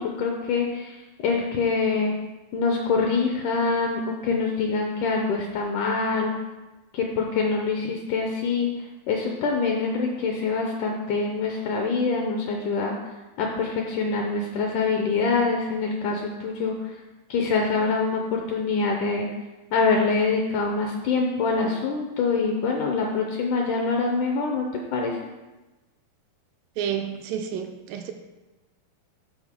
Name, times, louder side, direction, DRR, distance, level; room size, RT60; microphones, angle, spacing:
voice 1, 0.0-2.2 2.5-6.3 6.9-8.7 9.1-12.9 13.4-16.9 17.3-19.3 19.7-25.2, left 4 dB, 75° left, 1 dB, 1.9 m, -25 dB
voice 2, 26.8-28.1, right 8 dB, 80° right, 6 dB, 2.1 m, -30 dB
13.0 x 4.8 x 3.6 m, 1.1 s
omnidirectional pair, 4.2 m